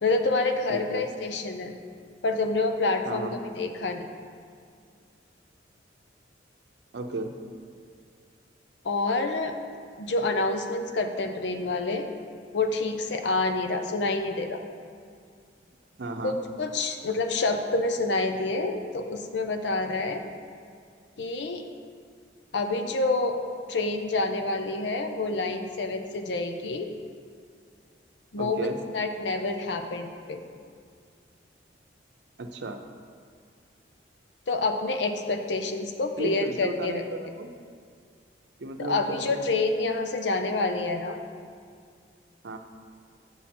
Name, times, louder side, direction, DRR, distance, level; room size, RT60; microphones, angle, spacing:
voice 1, 0.0-1.7 2.2-4.0 8.8-9.5 10.0-12.1 12.5-14.6 16.2-20.3 21.2-21.6 22.5-23.4 23.7-26.9 28.3-28.7 28.9-30.4 34.5-37.0 38.8-41.2, left 3 dB, 70° left, 6 dB, 0.6 m, -27 dB
voice 2, 0.7-1.1 3.1-3.3 6.9-7.3 16.0-16.4 28.4-28.8 32.4-32.8 36.2-37.5 38.6-39.6 42.4-42.6, right 2 dB, 70° right, 5 dB, 0.6 m, -34 dB
7.3 x 7.0 x 4.3 m, 2.2 s
head